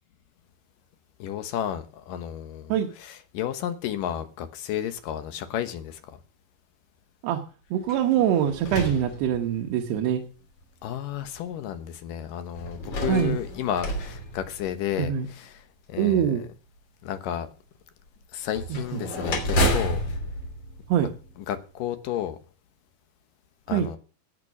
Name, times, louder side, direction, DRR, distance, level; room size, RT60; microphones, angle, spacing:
voice 1, 1.2-2.7 3.3-6.2 10.8-15.5 15.9-16.3 17.0-17.5 18.3-20.2 21.5-22.4 23.7-24.0, left 10 dB, 70° left, 2.5 m, -32 dB
voice 2, 7.7-10.2 13.0-13.4 14.9-15.3 16.0-16.4 18.7-19.0 20.9-21.1 23.7-23.9, right 9 dB, 85° right, 3.2 m, -24 dB
sound 1, 7.8-9.8 10.6-10.7 12.6-15.1 18.5-21.6, equal, 50° left, 4.1 m, -30 dB
17.5 x 6.0 x 6.0 m
omnidirectional pair, 4.6 m